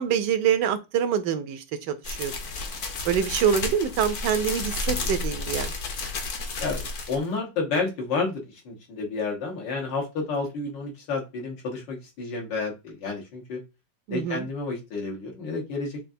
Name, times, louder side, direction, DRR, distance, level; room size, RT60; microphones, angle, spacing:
voice 1, 0.0-2.3 3.0-5.7 14.1-14.4, right 8 dB, 75° right, 1.2 m, -25 dB
sound 1, 2.0-7.2, left 3 dB, 55° left, 0.9 m, -32 dB
voice 2, 6.6-13.6 14.1-16.0, left 4 dB, 85° left, 1.9 m, -30 dB
6.3 x 2.4 x 2.6 m
omnidirectional pair, 1.9 m